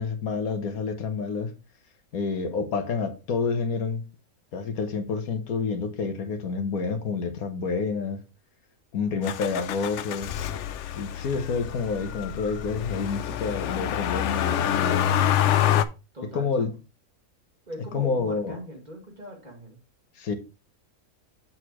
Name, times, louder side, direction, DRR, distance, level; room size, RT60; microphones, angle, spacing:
voice 1, 0.0-1.5 2.1-4.0 4.5-8.2 8.9-10.3 11.0-15.2 16.3-16.7 17.9-18.6 20.2-20.4, left 5 dB, 85° left, 1.6 m, -28 dB
Motor vehicle (road), 9.2-15.8, left 11 dB, 65° left, 0.8 m, -27 dB
voice 2, 16.1-16.7 17.7-19.8, right 1 dB, 30° right, 2.1 m, -40 dB
7.4 x 6.5 x 3.0 m
omnidirectional pair, 1.5 m